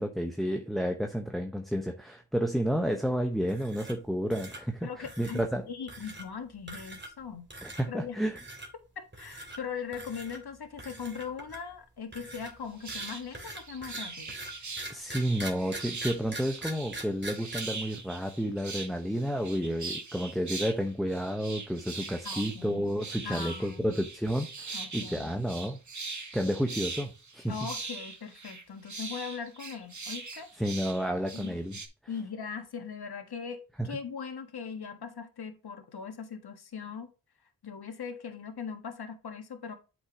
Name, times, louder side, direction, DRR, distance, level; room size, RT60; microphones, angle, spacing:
voice 1, 0.0-5.6 7.6-8.4 14.9-25.8 26.3-27.5 30.6-31.8 33.8-34.0, equal, ahead, 1.1 m, -31 dB
sound 1, 3.4-4.0 4.3-4.6 5.0-5.5 5.9-6.3 6.7-7.2 7.5-7.8 8.4-8.7 9.1-9.6 9.9-10.4 10.8-11.7 12.1-17.6, right 2 dB, 25° right, 2.7 m, -42 dB
voice 2, 4.8-8.2 8.9-14.4 22.2-22.8 23.2-23.9 24.7-25.3 27.5-30.5 31.3-31.6 32.1-37.1 37.6-39.7, left 6 dB, 60° left, 1.5 m, -40 dB
sound 2, 12.5-12.6 12.8-20.8 21.1-31.9, right 4 dB, 40° right, 1.5 m, -41 dB
8.0 x 6.1 x 2.9 m
cardioid pair, 50°, 42 cm